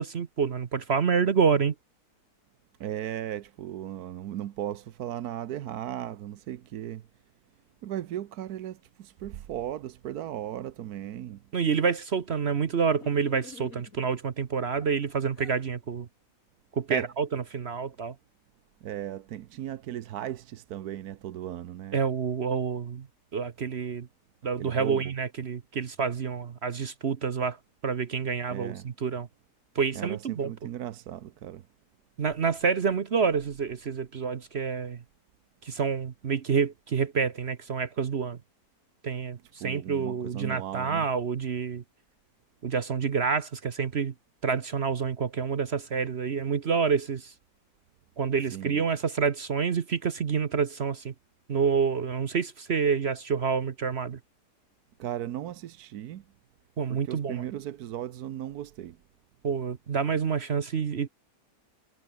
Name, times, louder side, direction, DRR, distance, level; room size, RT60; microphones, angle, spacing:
voice 1, 0.0-1.7 11.5-16.1 16.8-17.2 17.5-18.1 21.9-23.1 23.3-24.1 24.4-27.6 27.8-29.3 29.8-30.5 32.2-35.0 35.6-38.4 39.0-39.4 39.6-41.8 42.6-44.1 44.4-47.3 48.2-51.1 51.5-54.2 56.8-57.4 59.4-61.1, right 6 dB, 45° right, 1.0 m, -28 dB
voice 2, 2.8-7.1 7.8-11.4 16.9-17.1 18.8-22.0 24.6-25.1 28.5-28.9 29.9-31.7 39.6-41.1 48.5-48.8 55.0-56.2 56.9-59.0, right 11 dB, 70° right, 1.3 m, -36 dB
sound 1, 12.8-14.2 14.8-15.6, left 4 dB, 55° left, 2.9 m, -48 dB
omnidirectional pair, 1.8 m